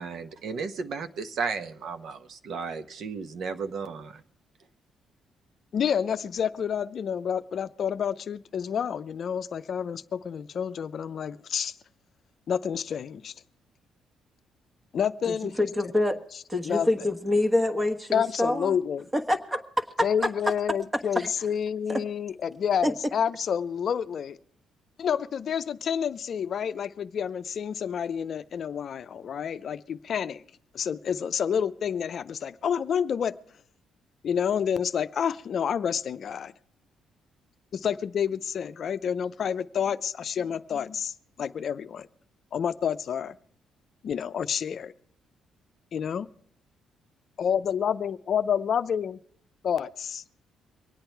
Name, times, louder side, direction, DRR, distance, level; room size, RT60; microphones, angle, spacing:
voice 1, 0.0-4.2, right 5 dB, 65° right, 10 dB, 0.9 m, -34 dB
voice 2, 5.7-11.7 12.5-13.3 14.9-15.5 16.7-16.9 18.1-19.1 20.0-24.4 25.0-30.4 30.7-33.3 34.2-36.5 37.7-42.1 42.5-43.4 44.0-44.9 45.9-46.3 47.4-49.2 49.6-50.2, left 8 dB, 55° left, 11 dB, 0.5 m, -29 dB
voice 3, 15.3-16.2 16.5-18.8 19.1-20.3 20.7-21.3 21.9-22.0 22.8-22.9, left 1 dB, 15° right, 7 dB, 1.4 m, -26 dB
23.5 x 8.9 x 4.5 m, 0.62 s
cardioid pair, 90°, 0 cm